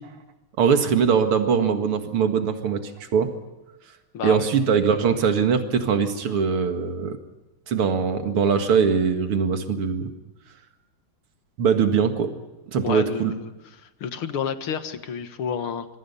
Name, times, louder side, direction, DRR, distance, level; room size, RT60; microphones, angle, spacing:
voice 1, 0.6-2.8 3.1-3.3 4.2-7.2 7.7-10.1 11.6-12.3 12.7-13.3, right 6 dB, 80° right, 6 dB, 2.8 m, -21 dB
voice 2, 4.1-4.5 12.8-13.5 13.8-15.9, left 7 dB, 75° left, 9 dB, 2.4 m, -30 dB
26.0 x 23.5 x 5.6 m, 1.1 s
omnidirectional pair, 2.4 m